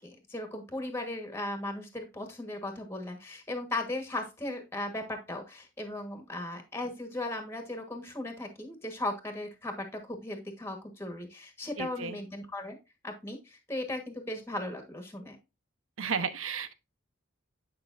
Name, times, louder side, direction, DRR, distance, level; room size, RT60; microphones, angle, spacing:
voice 1, 0.0-12.8 13.0-15.4, left 1 dB, 10° left, 1.5 m, -37 dB
voice 2, 11.8-12.2 16.0-16.7, right 6 dB, 85° right, 1.0 m, -33 dB
9.7 x 5.5 x 2.6 m
head